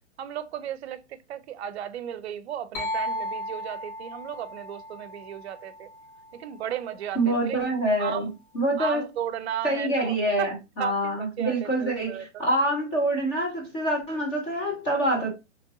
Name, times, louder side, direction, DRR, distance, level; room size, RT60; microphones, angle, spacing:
voice 1, 0.2-5.9 6.3-7.6 8.0-8.3 8.8-10.5 10.8-12.5, right 10 dB, 60° right, 0.5 m, -35 dB
sound 1, 2.7-6.4, left 1 dB, 45° left, 1.1 m, -35 dB
voice 2, 7.2-9.0 9.6-15.3, right 1 dB, 15° left, 0.3 m, -26 dB
3.0 x 2.6 x 2.6 m
hypercardioid pair, 140°, 37 cm